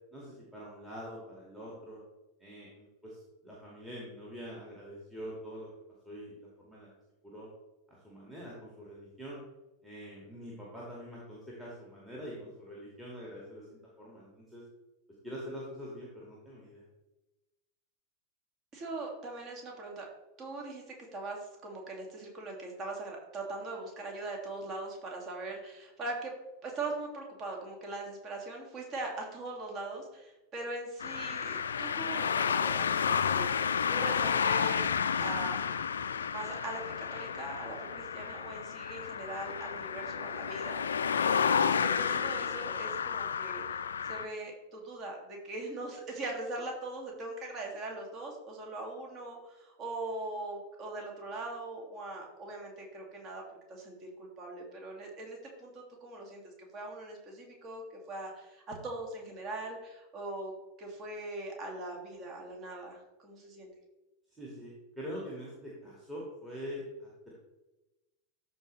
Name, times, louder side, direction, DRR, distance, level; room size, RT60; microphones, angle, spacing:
voice 1, 0.1-2.0 2.4-5.7 6.0-6.9 7.2-7.5 7.9-9.4 9.8-14.6 15.2-16.9 64.4-67.3, equal, 10° right, -6 dB, 2.1 m, -44 dB
voice 2, 18.7-20.1 20.4-20.8 21.1-26.3 26.6-34.9 35.2-35.6 36.3-53.4 53.7-60.5 60.8-63.7, right 2 dB, 30° right, 0 dB, 2.3 m, -41 dB
sound 1, 31.0-44.3, left 7 dB, 70° left, 0.4 m, -31 dB
13.0 x 4.4 x 3.3 m, 1.1 s
figure-of-eight pair, 90°, 0 cm